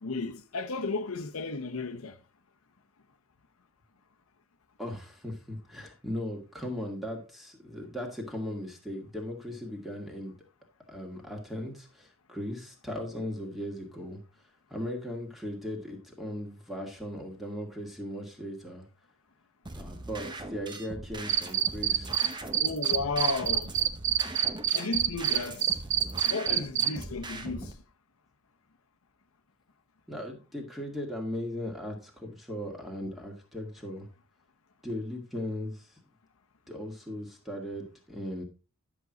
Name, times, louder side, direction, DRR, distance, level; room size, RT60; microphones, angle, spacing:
voice 1, 0.0-2.2 22.6-23.7 24.7-25.8 26.3-27.8, left 3 dB, 75° left, 0.8 m, -33 dB
voice 2, 4.8-10.3 10.9-14.2 14.7-18.9 19.7-22.4 30.1-34.1 34.8-36.0 36.7-38.4, left 1 dB, ahead, 2.0 m, -38 dB
sound 1, 19.6-27.7, right 2 dB, 20° right, 0.9 m, -41 dB
Cricket, 21.3-22.3 22.5-26.9, right 10 dB, 55° right, 0.7 m, -25 dB
10.5 x 6.2 x 3.9 m
head